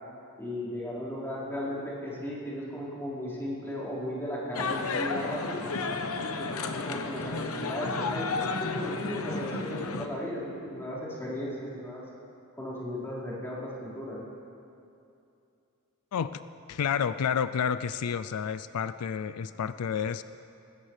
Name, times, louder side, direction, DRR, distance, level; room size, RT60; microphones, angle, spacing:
voice 1, 0.4-5.7 6.4-12.0 12.6-14.2, left 1 dB, 10° left, -9 dB, 4.6 m, -36 dB
sound 1, 4.5-10.1, left 3 dB, 70° left, 0.9 m, -32 dB
voice 2, 16.1-16.4 16.7-20.2, left 7 dB, 90° left, 13 dB, 0.4 m, -30 dB
20.0 x 16.5 x 3.3 m, 2.6 s
head